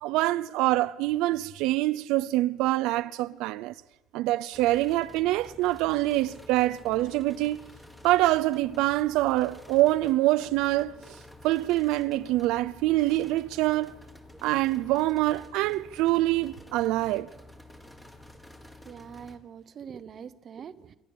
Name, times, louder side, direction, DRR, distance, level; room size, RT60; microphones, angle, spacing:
voice 1, 0.0-3.7 4.1-7.6 8.0-10.9 11.4-13.9 14.4-17.3, right 17 dB, 85° right, 0.6 m, -25 dB
sound 1, 4.5-19.4, left 1 dB, 5° left, 1.7 m, -50 dB
voice 2, 18.8-21.0, right 7 dB, 30° right, 0.9 m, -43 dB
28.5 x 12.0 x 8.6 m
cardioid pair, 180°, 0 cm